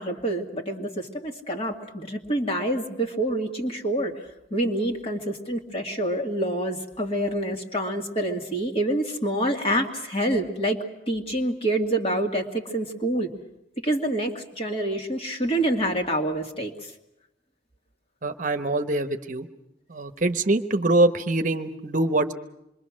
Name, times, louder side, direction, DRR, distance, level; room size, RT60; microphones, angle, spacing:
voice 1, 0.0-4.1 4.5-13.3 13.8-16.9, right 1 dB, 35° left, 3 dB, 2.2 m, -27 dB
voice 2, 18.2-19.5 19.9-22.3, right 2 dB, 45° right, 8 dB, 1.0 m, -24 dB
26.5 x 23.0 x 6.3 m, 0.88 s
head